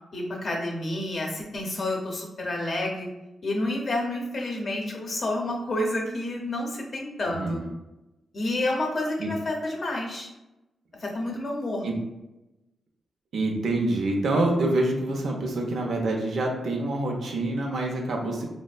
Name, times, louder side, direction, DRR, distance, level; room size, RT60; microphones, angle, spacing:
voice 1, 0.1-3.1 3.4-7.6 8.3-10.3 11.0-11.9, left 1 dB, 50° left, -1 dB, 0.7 m, -29 dB
voice 2, 7.3-7.7 9.2-9.3 11.8-11.9 13.3-18.5, right 2 dB, 75° right, 1 dB, 0.5 m, -26 dB
3.1 x 2.0 x 2.3 m, 0.98 s
cardioid pair, 75°, 0 cm